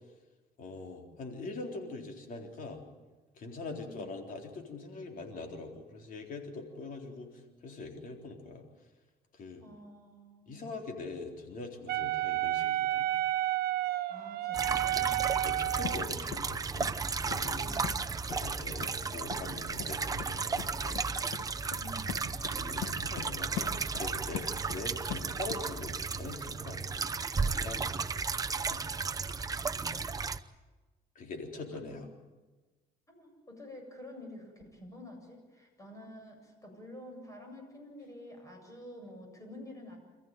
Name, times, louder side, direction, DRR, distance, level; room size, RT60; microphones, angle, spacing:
voice 1, 0.6-2.8 3.4-8.7 9.3-9.6 10.5-13.1 15.3-16.9 17.2-17.7 18.3-21.0 22.5-26.8 27.5-28.2 28.7-28.8 31.2-32.1, left 3 dB, 55° left, 3 dB, 3.8 m, -43 dB
voice 2, 3.8-4.2 9.6-10.7 14.1-15.2 17.6-18.2 21.8-22.2 29.8-30.0 31.7-32.0 33.1-40.0, left 1 dB, 20° left, 2 dB, 7.8 m, -49 dB
Wind instrument woodwind instrument, 11.9-16.1, right 14 dB, 70° right, 1.1 m, -31 dB
sound 1, 14.5-30.4, right 4 dB, 20° right, 0.8 m, -34 dB
sound 2, 15.8-16.0 16.3-16.4 16.8-16.9 17.3-17.4 17.8-18.0 18.3-18.4 18.8-18.9 19.3-19.4 19.8-19.9 20.2-20.3 20.6-20.7 21.0-21.1 21.3-21.4 21.7-21.8 22.1-22.6 22.8-23.3 23.6-24.8 25.1-25.6, left 11 dB, 75° left, 1.9 m, -39 dB
27.5 x 14.5 x 9.2 m, 1.2 s
cardioid pair, 110°, 17 cm